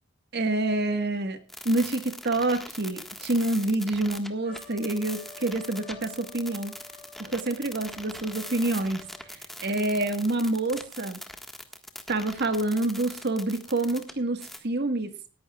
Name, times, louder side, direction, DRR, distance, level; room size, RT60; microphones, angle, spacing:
voice 1, 0.3-6.7 7.2-9.0 9.3-11.2 12.1-15.1, right 2 dB, 50° right, 9 dB, 1.5 m, -27 dB
sound 1, 1.5-14.1 14.4-14.6, left 1 dB, ahead, 1.5 m, -41 dB
Trumpet, 4.4-9.4, left 2 dB, 40° left, 3.9 m, -50 dB
20.0 x 14.5 x 2.3 m, 0.35 s
head